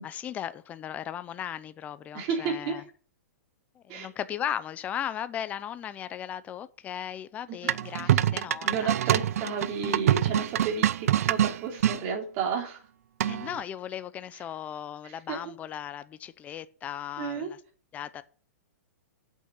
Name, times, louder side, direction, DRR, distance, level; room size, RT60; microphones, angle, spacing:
voice 1, 0.0-2.8 3.8-8.9 13.2-17.6 17.9-18.2, left 10 dB, 15° left, 0.6 m, -37 dB
voice 2, 2.1-2.8 3.9-4.1 7.5-7.7 8.0-8.2 8.6-12.8 15.0-15.5 17.2-17.5, right 5 dB, 35° right, 3.1 m, -32 dB
sound 1, 7.7-12.0 13.2-13.6, right 11 dB, 65° right, 0.5 m, -25 dB
8.6 x 6.3 x 7.9 m
hypercardioid pair, 155°, 8 cm